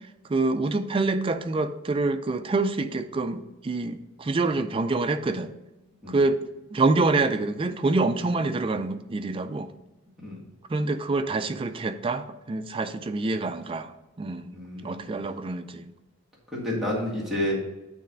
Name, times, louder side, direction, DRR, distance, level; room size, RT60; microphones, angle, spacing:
voice 1, 0.3-5.5 6.1-9.7 10.7-14.6 14.8-15.9, right 3 dB, 25° right, 9 dB, 0.4 m, -26 dB
voice 2, 14.5-15.1 16.5-17.6, left 1 dB, ahead, -6 dB, 1.9 m, -29 dB
9.2 x 3.1 x 5.2 m, 0.98 s
head